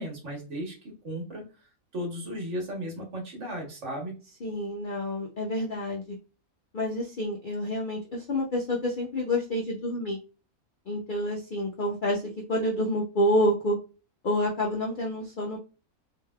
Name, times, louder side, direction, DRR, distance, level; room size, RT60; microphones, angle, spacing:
voice 1, 0.0-1.5 1.9-4.2, equal, 60° right, 0 dB, 1.4 m, -35 dB
voice 2, 4.4-6.0 6.7-10.2 10.9-12.2 12.5-13.8 14.2-15.6, left 1 dB, 55° left, -2 dB, 0.5 m, -28 dB
3.2 x 2.7 x 2.2 m, 0.33 s
omnidirectional pair, 1.5 m